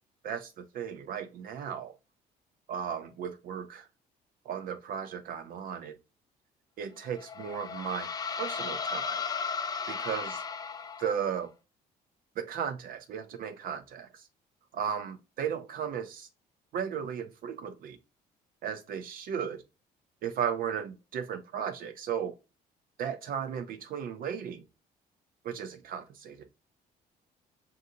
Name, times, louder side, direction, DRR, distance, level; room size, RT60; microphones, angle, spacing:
voice 1, 0.2-1.9 2.7-3.9 4.5-5.9 6.8-9.2 9.9-10.4 11.0-11.5 12.4-14.3 14.7-16.3 16.7-18.0 18.6-19.6 20.2-22.3 23.0-24.6 25.4-26.5, right 8 dB, 60° right, 0.5 m, -35 dB
sound 1, 7.0-11.4, left 6 dB, 20° left, 0.4 m, -35 dB
6.5 x 2.5 x 2.6 m
cardioid pair, 110°, 17 cm